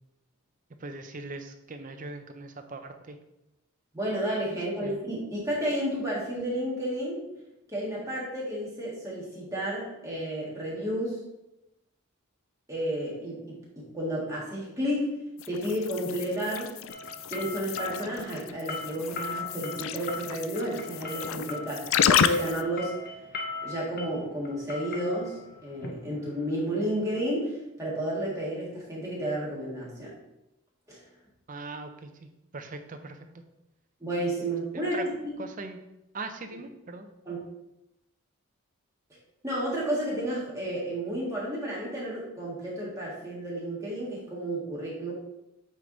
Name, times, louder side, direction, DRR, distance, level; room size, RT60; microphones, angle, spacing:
voice 1, 0.8-3.2 4.5-5.0 31.5-33.3 34.9-35.0 35.4-35.8 36.1-37.1, right 3 dB, 35° right, 6 dB, 0.5 m, -40 dB
voice 2, 3.9-7.3 7.7-11.2 12.7-16.8 17.3-23.0 23.6-30.1 30.9-31.0 34.0-35.0 35.2-35.4 37.3-37.4 39.4-45.1, right 1 dB, 15° right, -6 dB, 1.7 m, -32 dB
sound 1, 15.4-22.6, left 9 dB, 65° left, 0.3 m, -30 dB
sound 2, 16.9-26.8, left 3 dB, 45° left, 0.8 m, -39 dB
8.3 x 3.5 x 3.9 m, 0.91 s
head